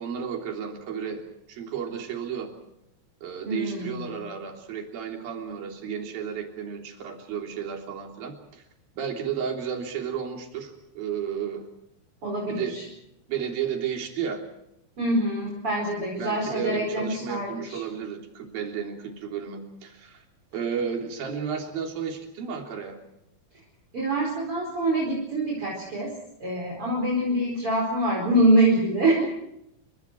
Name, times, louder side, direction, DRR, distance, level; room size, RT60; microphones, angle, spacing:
voice 1, 0.0-2.5 3.2-8.6 9.0-11.7 12.5-12.9 13.3-14.4 16.2-20.2 20.5-23.0, right 7 dB, 65° right, 2 dB, 5.1 m, -33 dB
voice 2, 3.4-4.1 12.2-12.8 15.0-17.8 23.9-26.1 26.4-29.3, right 1 dB, 35° right, -1 dB, 5.6 m, -25 dB
29.5 x 24.5 x 4.7 m, 0.81 s
omnidirectional pair, 4.5 m